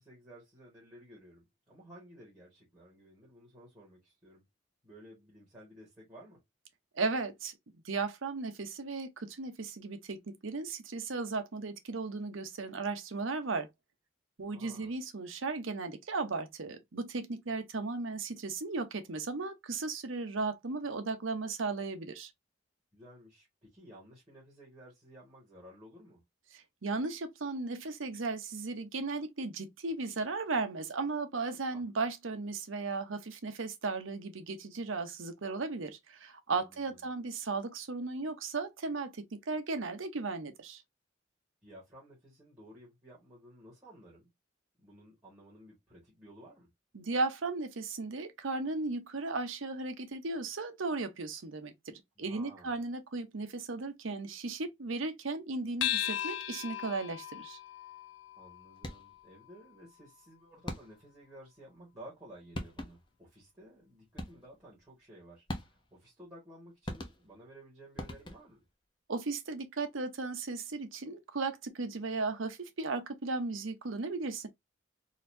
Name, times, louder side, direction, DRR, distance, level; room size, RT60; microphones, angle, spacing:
voice 1, 0.0-4.4 4.8-6.4 14.4-15.0 22.9-26.2 31.7-31.8 36.5-37.0 41.6-44.3 44.8-46.7 52.2-52.8 58.4-68.6, right 1 dB, 15° right, 1.8 m, -54 dB
voice 2, 7.0-7.5 7.8-13.7 14.4-22.3 26.5-40.8 46.9-57.6 69.1-74.5, right 3 dB, 80° right, 0.8 m, -36 dB
sound 1, 55.8-60.6, left 11 dB, 65° left, 0.5 m, -38 dB
sound 2, 58.8-59.3 60.7-61.2 62.2-62.3 62.5-63.2 64.2-64.6 65.5-66.0 66.8-67.5 68.0-68.7, left 1 dB, 25° left, 0.7 m, -42 dB
4.0 x 2.7 x 2.6 m
head